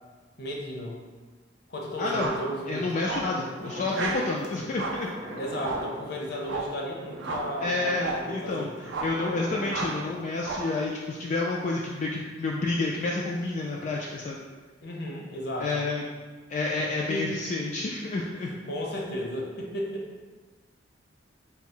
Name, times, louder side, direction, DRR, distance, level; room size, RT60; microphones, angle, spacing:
voice 1, 0.4-1.0 1.7-2.9 5.4-8.9 14.8-15.9 16.7-16.8 17.1-17.4 18.4-20.1, equal, 60° left, -1 dB, 0.7 m, -34 dB
voice 2, 2.0-2.3 2.7-5.1 7.6-8.7 9.0-14.4 15.6-16.1 16.5-18.5, left 3 dB, 45° left, -3 dB, 0.3 m, -29 dB
sound 1, 2.1-2.5 3.0-3.4 3.9-4.3 4.7-5.1 5.6-5.9 6.4-6.8 7.2-7.5 8.0-8.3 8.9-9.2 9.7-10.0 10.4-10.8, right 3 dB, 75° right, 0.4 m, -33 dB
sound 2, 3.6-4.6 5.0-10.2, equal, 45° right, 0.7 m, -42 dB
3.5 x 2.0 x 4.3 m, 1.4 s
head